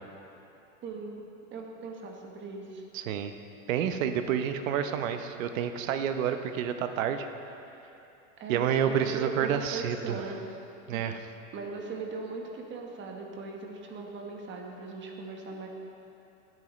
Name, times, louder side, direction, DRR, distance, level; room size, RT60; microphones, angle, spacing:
voice 1, 0.8-1.2 1.5-2.8 8.4-10.6 10.9-15.7, right 4 dB, 30° right, 1 dB, 1.2 m, -39 dB
voice 2, 2.9-3.3 3.7-7.3 8.5-10.2 10.9-11.2, right 8 dB, 75° right, 8 dB, 0.9 m, -29 dB
16.5 x 9.3 x 3.1 m, 2.9 s
supercardioid pair, 135°, 40 cm